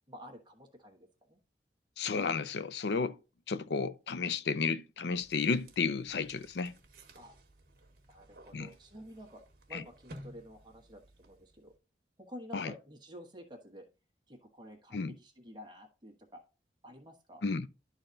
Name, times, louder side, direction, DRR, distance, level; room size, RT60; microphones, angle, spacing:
voice 1, 0.1-1.4 7.1-7.3 8.1-9.4 9.7-11.7 12.2-13.9 14.3-16.4 16.8-17.4, equal, 25° right, 1.2 m, -50 dB
voice 2, 2.0-3.2 3.5-6.7 8.5-8.7 9.7-9.8 12.5-12.7 14.9-15.1 17.4-17.7, left 4 dB, 70° left, 0.5 m, -32 dB
sound 1, 5.2-11.8, right 1 dB, 55° right, 1.4 m, -55 dB
11.5 x 4.0 x 3.9 m
head